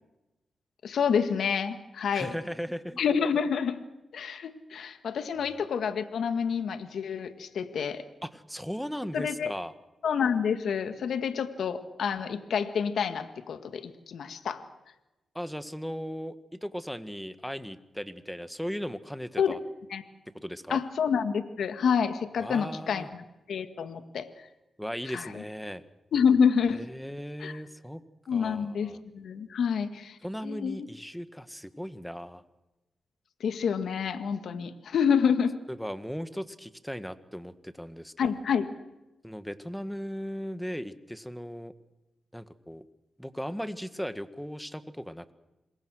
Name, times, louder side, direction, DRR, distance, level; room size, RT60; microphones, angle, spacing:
voice 1, 0.8-2.3 3.0-3.8 4.1-8.0 9.1-9.5 10.0-14.6 19.4-19.5 19.9-20.0 20.7-24.3 25.1-25.3 26.1-26.8 27.4-27.6 28.3-30.2 30.4-30.9 33.4-35.6 38.2-38.6, left 7 dB, 80° left, 9 dB, 1.8 m, -28 dB
voice 2, 2.1-3.0 8.2-9.7 15.3-16.3 16.6-19.6 20.4-20.8 22.4-23.1 24.8-25.8 26.7-28.0 28.3-29.0 30.2-32.4 35.7-38.3 39.2-41.7 42.3-42.8 43.2-45.3, equal, ahead, 11 dB, 1.7 m, -37 dB
27.0 x 22.0 x 6.4 m, 0.99 s
cardioid pair, 60°, 0 cm